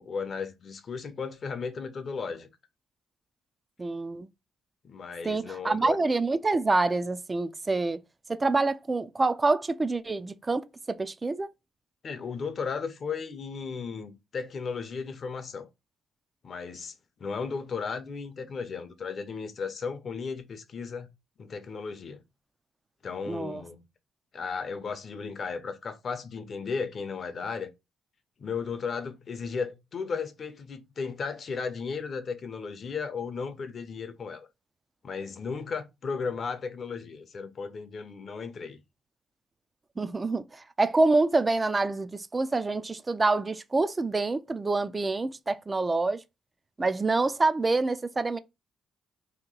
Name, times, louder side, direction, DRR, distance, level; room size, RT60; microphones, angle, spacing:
voice 1, 0.0-2.5 4.8-6.0 12.0-15.7 16.4-16.9 17.2-21.1 21.4-22.2 23.0-23.8 24.3-27.7 28.4-34.5 35.0-38.8, left 5 dB, 50° left, 0.6 m, -35 dB
voice 2, 3.8-4.3 5.2-8.0 8.3-11.5 23.3-23.6 40.0-46.2 46.8-48.4, right 3 dB, 25° right, 0.3 m, -26 dB
2.9 x 2.6 x 3.8 m
cardioid pair, 90°, 0 cm